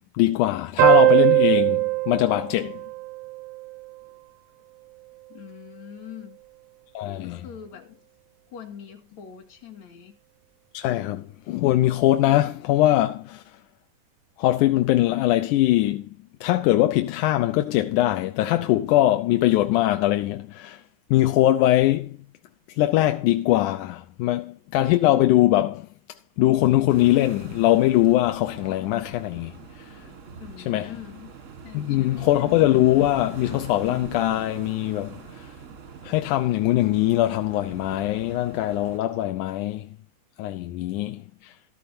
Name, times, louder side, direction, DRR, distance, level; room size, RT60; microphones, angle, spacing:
voice 1, 0.1-2.8 6.9-7.5 10.7-13.4 14.4-16.1 16.4-20.8 21.1-22.2 22.8-25.9 26.4-29.9 30.7-30.9 31.7-35.5 36.0-39.9 40.4-41.5, left 15 dB, 85° left, 2.2 m, -22 dB
sound 1, 0.8-3.9, right 21 dB, 80° right, 1.4 m, -20 dB
voice 2, 5.3-6.4 7.2-8.0 8.5-10.2 30.4-31.3 31.6-32.3, left 8 dB, 65° left, 3.3 m, -43 dB
sound 2, 26.9-39.0, right 6 dB, 50° right, 0.9 m, -42 dB
13.5 x 13.0 x 2.7 m
omnidirectional pair, 3.5 m